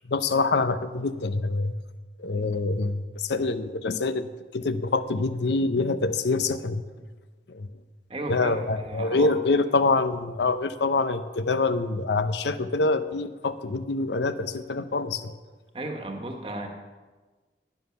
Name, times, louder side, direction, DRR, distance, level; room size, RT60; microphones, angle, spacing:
voice 1, 0.1-1.7 2.2-6.8 7.5-7.7 8.3-15.3, left 3 dB, 80° left, 12 dB, 0.6 m, -25 dB
voice 2, 8.1-9.3 15.7-16.7, right 2 dB, 30° right, 4 dB, 1.3 m, -34 dB
10.5 x 9.8 x 5.9 m, 1.3 s
head